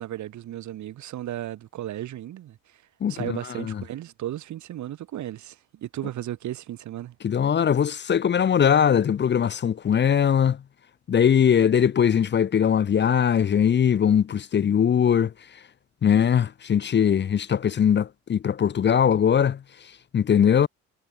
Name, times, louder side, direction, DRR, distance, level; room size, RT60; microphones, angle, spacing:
voice 1, 0.0-2.8 3.1-7.2, right 13 dB, 75° right, 1.8 m, -35 dB
voice 2, 3.0-3.4 3.7-3.8 7.2-10.6 11.1-15.3 16.0-19.6 20.1-20.7, left 8 dB, 35° left, 0.6 m, -20 dB
cardioid pair, 90°, 30 cm